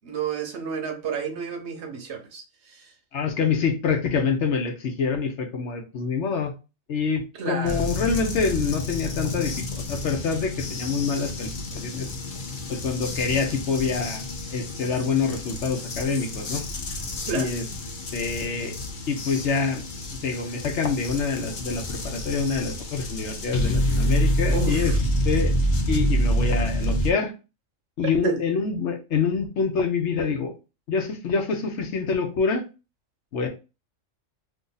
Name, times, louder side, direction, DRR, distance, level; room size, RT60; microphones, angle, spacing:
voice 1, 0.0-2.4 2.7-2.9 7.4-7.9 17.3-17.5 24.5-25.0 28.2-28.4, right 6 dB, 65° right, 1.0 m, -30 dB
voice 2, 3.1-6.5 6.9-12.1 12.7-14.2 14.5-16.6 17.3-17.6 18.1-18.7 19.1-19.8 20.2-25.0 25.2-25.5 25.9-27.3 28.0-30.5 30.9-32.6 33.3-33.5, left 5 dB, 65° left, 1.0 m, -26 dB
sound 1, 7.6-27.1, equal, 45° left, 0.7 m, -28 dB
2.7 x 2.6 x 3.8 m
omnidirectional pair, 1.3 m